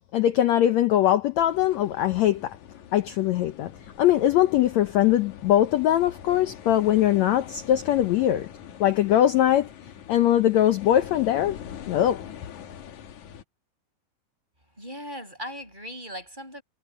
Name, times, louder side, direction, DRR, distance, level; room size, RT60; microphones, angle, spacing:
voice 1, 0.1-2.6 2.9-3.7 4.0-8.5 8.8-9.7 10.1-11.6 11.9-12.2, left 12 dB, 85° left, 1.5 m, -21 dB
sound 1, 1.4-13.4, left 9 dB, 60° left, 2.7 m, -43 dB
voice 2, 14.8-16.6, equal, 10° right, 7.6 m, -38 dB
omnidirectional pair, 4.2 m